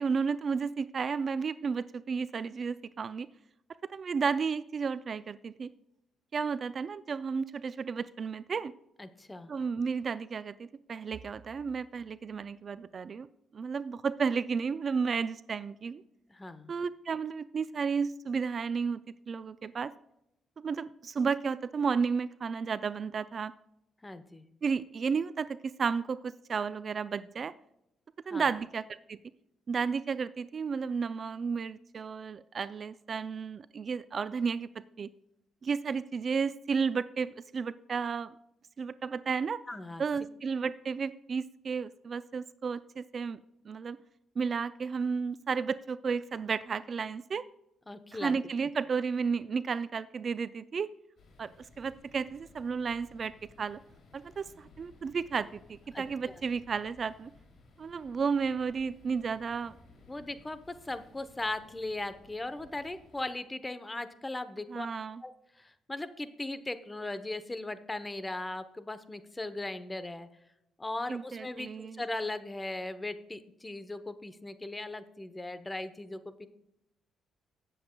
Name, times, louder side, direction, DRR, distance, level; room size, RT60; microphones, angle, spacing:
voice 1, 0.0-3.3 3.9-5.7 6.3-8.7 9.5-13.3 13.5-16.0 16.7-19.0 19.3-19.9 20.6-23.5 24.6-27.5 28.3-28.8 29.1-29.2 29.7-34.7 35.0-35.1 35.6-38.3 38.8-39.6 40.0-43.4 43.6-44.0 44.4-47.4 48.2-50.9 51.4-53.8 54.1-57.3 57.8-59.8 64.7-65.2 71.1-72.0, right 5 dB, 45° right, 15 dB, 0.3 m, -32 dB
voice 2, 9.0-9.5 16.3-16.7 24.0-24.5 28.3-28.5 39.7-40.0 47.9-48.3 55.9-56.4 60.1-64.9 65.2-70.3 70.8-76.5, left 2 dB, 15° left, 12 dB, 0.8 m, -38 dB
sound 1, 51.2-63.3, left 3 dB, 60° left, 2.9 m, -59 dB
18.0 x 7.8 x 2.3 m, 0.86 s
cardioid pair, 90°, 0 cm